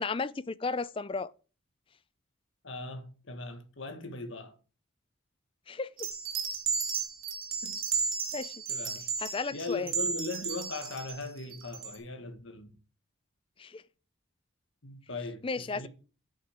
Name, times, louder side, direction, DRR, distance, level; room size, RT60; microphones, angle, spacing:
voice 1, 0.0-1.3 5.7-6.1 8.3-8.5 9.2-9.9 13.6-13.8 15.4-15.9, left 4 dB, 25° left, 0.4 m, -34 dB
voice 2, 2.6-4.6 7.6-8.1 8.7-9.1 9.5-12.8 14.8-15.9, left 2 dB, 65° left, 1.6 m, -39 dB
sound 1, 6.0-12.0, right 6 dB, 75° right, 2.4 m, -34 dB
8.3 x 6.4 x 6.0 m
head